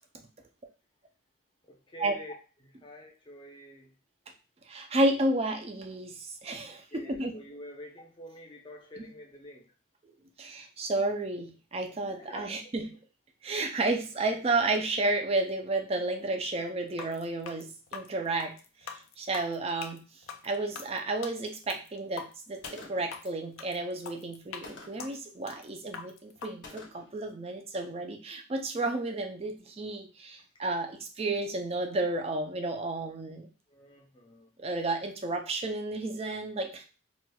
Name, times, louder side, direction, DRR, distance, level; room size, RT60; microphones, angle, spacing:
voice 1, 1.7-2.3 2.6-3.9 6.7-9.7 12.1-12.7 33.7-34.5, left 1 dB, 20° left, 0 dB, 0.6 m, -47 dB
voice 2, 4.7-7.4 9.0-9.1 10.4-12.8 13.4-18.5 19.2-20.0 20.4-33.5 34.6-36.8, right 2 dB, 30° right, 4 dB, 0.4 m, -32 dB
sound 1, 16.9-26.5, left 6 dB, 75° left, 0.4 m, -44 dB
Gunshot gunfire, 22.6-23.2 24.6-25.2 26.6-27.2, left 3 dB, 55° left, 0.8 m, -47 dB
4.2 x 2.4 x 2.2 m, 0.34 s
head